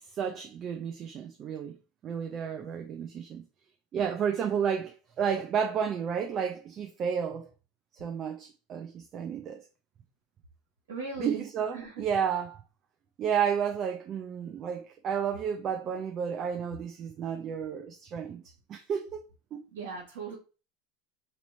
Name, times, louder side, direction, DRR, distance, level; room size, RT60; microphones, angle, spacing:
voice 1, 0.2-1.8 2.0-3.4 3.9-7.5 8.0-9.6 11.2-12.6 13.2-18.4 18.7-19.2 19.5-19.6, right 7 dB, 40° right, 0.5 m, -31 dB
voice 2, 10.9-11.5 11.7-12.0 19.7-20.4, right 4 dB, 85° right, 1.5 m, -38 dB
3.0 x 2.9 x 4.2 m
supercardioid pair, 105°, 0 cm